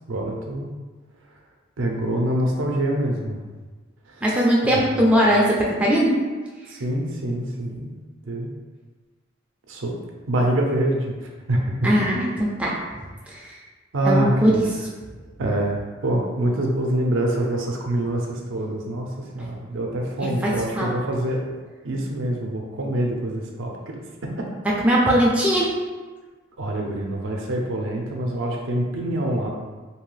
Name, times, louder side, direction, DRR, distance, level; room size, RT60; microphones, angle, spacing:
voice 1, 0.1-0.7 1.8-3.4 4.2-4.3 4.7-4.8 6.7-7.9 8.3-8.5 9.7-9.9 10.3-12.0 13.9-14.6 15.4-21.4 21.8-24.5 26.6-29.5, right 1 dB, 70° right, 0 dB, 0.5 m, -25 dB
voice 2, 4.2-6.2 11.8-12.7 13.3-13.4 14.0-14.5 20.2-20.9 24.8-25.7, equal, 5° right, -5 dB, 0.3 m, -20 dB
2.7 x 2.3 x 3.1 m, 1.3 s
head